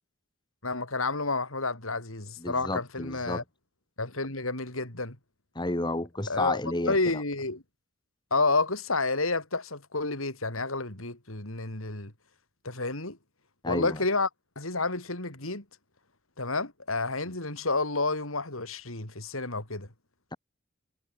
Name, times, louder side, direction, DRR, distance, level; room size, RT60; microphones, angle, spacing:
voice 1, 0.6-3.4 4.0-5.2 6.3-7.6 8.3-12.1 12.6-13.2 13.7-14.3 14.6-15.6 16.4-19.9, left 3 dB, 85° left, 5.1 m, -30 dB
voice 2, 2.4-3.4 5.6-7.2 13.6-14.0, left 2 dB, 20° left, 1.8 m, -31 dB
head